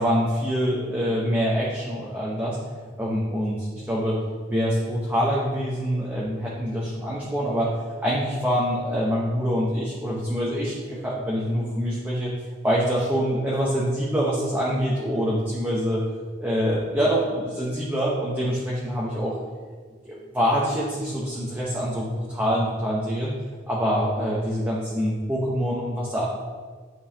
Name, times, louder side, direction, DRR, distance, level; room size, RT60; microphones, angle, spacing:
voice 1, 0.0-2.6 3.0-4.2 4.5-7.7 8.0-12.3 12.6-16.0 16.4-19.4 20.0-23.3 23.7-26.2, equal, 10° right, -6 dB, 0.9 m, -25 dB
9.8 x 5.4 x 2.8 m, 1.5 s
head